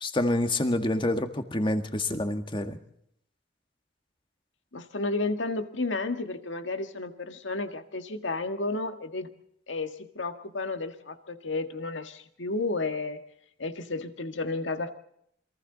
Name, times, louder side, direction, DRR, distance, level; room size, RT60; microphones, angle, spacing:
voice 1, 0.0-2.8, left 1 dB, 25° left, 7 dB, 1.8 m, -27 dB
voice 2, 4.7-9.3 9.7-13.2 13.6-14.9, left 3 dB, 90° left, 7 dB, 1.8 m, -32 dB
27.5 x 23.5 x 4.0 m, 0.73 s
head